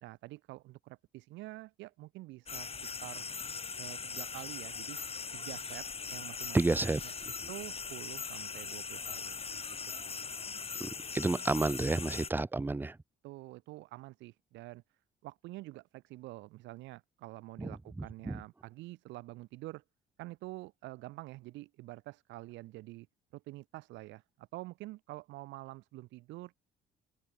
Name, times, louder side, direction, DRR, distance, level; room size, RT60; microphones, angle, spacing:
voice 1, 0.0-3.2 3.8-5.0 5.3-6.7 7.0-7.1 7.5-9.4 9.6-10.3 13.2-14.8 15.2-19.8 20.2-23.1 23.3-26.5, right 19 dB, 90° right, 2.9 m, -47 dB
sound 1, 2.5-12.3, left 5 dB, 35° left, 6.9 m, -40 dB
voice 2, 6.5-7.0 10.8-13.0 17.6-17.7 18.0-18.4, right 2 dB, 10° right, 0.6 m, -31 dB
open air
cardioid pair, 95°, 18 cm